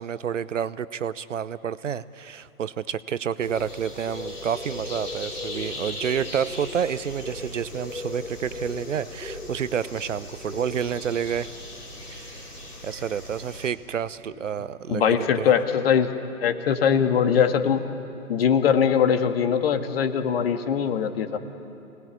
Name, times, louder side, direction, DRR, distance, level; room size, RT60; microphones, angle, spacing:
voice 1, 0.0-11.5 12.1-12.5 12.8-15.5, right 8 dB, 55° right, 17 dB, 0.9 m, -29 dB
sound 1, 3.4-13.7, left 2 dB, 90° left, 5.3 m, -37 dB
voice 2, 14.9-17.8 18.3-21.4, left 7 dB, 40° left, 8 dB, 1.9 m, -22 dB
28.0 x 19.0 x 9.8 m, 3.0 s
figure-of-eight pair, 130°, 44 cm